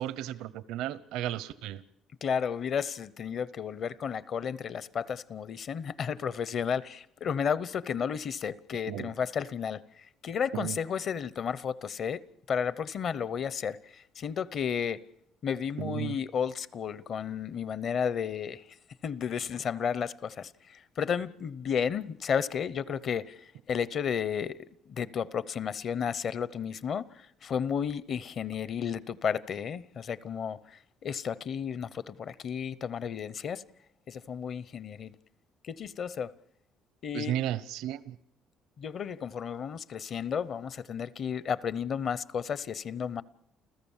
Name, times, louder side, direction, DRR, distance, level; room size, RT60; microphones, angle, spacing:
voice 1, 0.0-1.8 8.9-9.1 10.5-10.8 15.8-16.2 37.1-38.2, right 12 dB, 85° right, 0.8 m, -34 dB
voice 2, 2.2-15.0 15.4-18.8 19.0-24.6 24.9-33.6 34.1-35.1 35.6-36.3 37.0-37.4 38.8-43.2, left 7 dB, 45° left, 0.8 m, -33 dB
29.5 x 15.0 x 7.2 m
cardioid pair, 140°, 0 cm